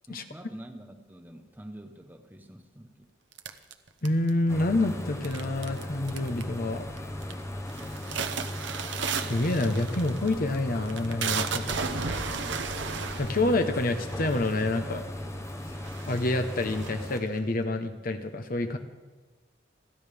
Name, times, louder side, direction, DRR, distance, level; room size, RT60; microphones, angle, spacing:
voice 1, 0.1-3.2, right 1 dB, 10° right, 5 dB, 1.1 m, -46 dB
sound 1, 3.4-4.5 5.2-5.8 6.1-6.6 7.0-7.3 7.7-14.7 15.4-15.5 15.8-17.4, right 6 dB, 70° right, 1.0 m, -34 dB
voice 2, 4.0-6.9 9.2-11.9 13.2-15.0 16.1-18.8, left 2 dB, 50° left, 7 dB, 1.1 m, -28 dB
sound 2, 4.5-17.2, left 1 dB, 15° left, 1.0 m, -37 dB
29.5 x 11.0 x 3.5 m, 1.3 s
head